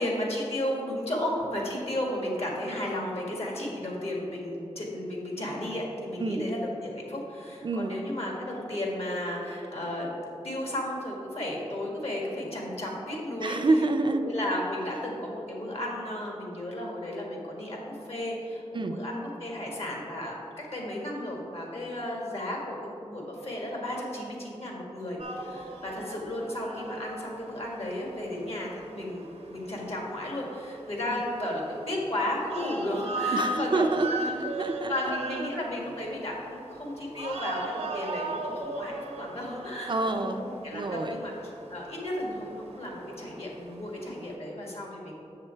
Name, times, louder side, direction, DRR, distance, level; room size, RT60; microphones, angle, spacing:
voice 1, 0.0-10.1 10.4-13.6 14.1-29.2 29.5-34.4 34.9-41.3 41.7-45.1, left 1 dB, 65° left, -2 dB, 1.8 m, -34 dB
voice 2, 7.6-7.9 13.4-14.3 18.7-19.0 31.1-31.2 33.3-35.1 39.9-40.5 40.7-41.2, right 2 dB, 45° right, 6 dB, 0.5 m, -28 dB
Muslim pray in Chinese mosque in Xi'an, 25.2-44.3, right 2 dB, 80° right, 0.9 m, -38 dB
6.8 x 6.7 x 4.5 m, 2.8 s
wide cardioid pair, 80°, 11 cm